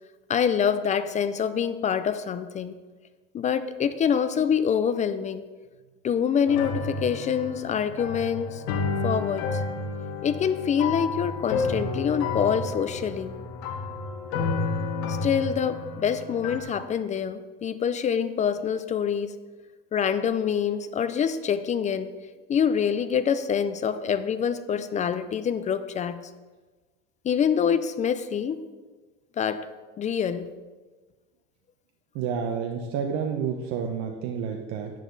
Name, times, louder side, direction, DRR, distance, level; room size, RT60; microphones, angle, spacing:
voice 1, 0.3-2.7 3.3-5.4 6.0-8.6 9.0-9.6 10.2-13.4 15.1-19.3 19.9-22.1 22.5-26.2 27.2-28.6 29.4-29.7 30.0-30.5, left 7 dB, 25° left, 12 dB, 0.4 m, -26 dB
sound 1, 6.5-16.6, left 4 dB, 55° left, 1.5 m, -31 dB
voice 2, 32.1-34.9, right 7 dB, 55° right, 2 dB, 1.0 m, -29 dB
10.5 x 9.1 x 4.0 m, 1.3 s
supercardioid pair, 130°, 32 cm